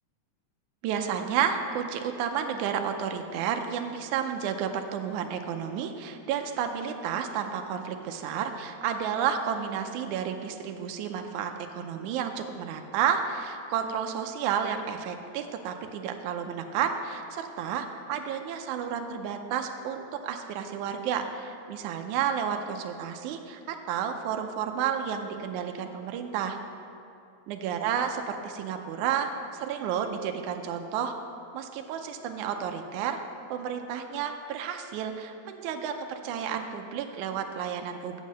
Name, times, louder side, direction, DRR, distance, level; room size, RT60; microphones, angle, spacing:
voice 1, 0.8-26.6 27.5-31.1 31.5-33.2 33.5-38.2, right 8 dB, 80° right, 5 dB, 2.0 m, -31 dB
7.5 x 7.3 x 7.4 m, 2.7 s
omnidirectional pair, 3.6 m